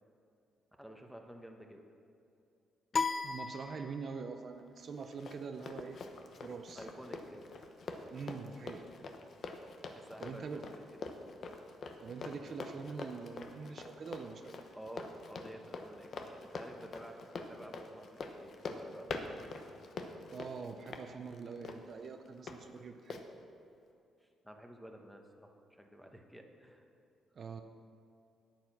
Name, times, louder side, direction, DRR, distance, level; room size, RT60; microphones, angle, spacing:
voice 1, 0.8-1.8 6.7-7.5 9.9-10.8 14.7-18.1 18.4-19.7 24.2-26.8, right 1 dB, ahead, 2 dB, 1.2 m, -51 dB
sound 1, 2.9-4.4, left 4 dB, 35° left, 0.3 m, -36 dB
voice 2, 3.2-6.0 6.4-6.9 8.1-8.9 10.2-10.7 12.0-14.6 20.3-23.2 27.4-27.6, right 5 dB, 50° right, 6 dB, 0.6 m, -44 dB
Run, 4.8-22.6 23.1-23.2, left 4 dB, 55° left, 0.9 m, -45 dB
9.3 x 9.1 x 6.0 m, 2.6 s
cardioid pair, 90°, 0 cm